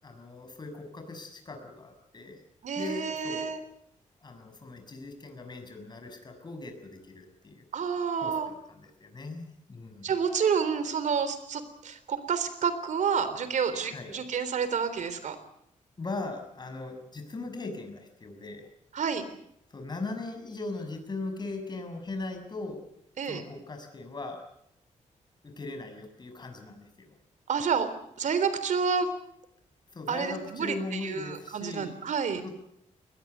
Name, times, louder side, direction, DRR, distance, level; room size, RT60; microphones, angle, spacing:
voice 1, 0.0-2.4 2.8-3.5 4.2-7.6 8.2-10.2 13.9-14.1 16.0-18.7 19.7-22.8 23.2-24.4 25.4-27.1 29.9-31.9 32.4-32.6, left 2 dB, 35° left, 5 dB, 6.5 m, -39 dB
voice 2, 2.6-3.6 7.7-8.5 10.0-15.4 18.9-19.2 23.2-23.4 27.5-27.9 28.2-29.1 30.1-32.4, right 6 dB, 70° right, 12 dB, 3.6 m, -29 dB
22.0 x 20.5 x 8.1 m, 0.76 s
cardioid pair, 110°, 13 cm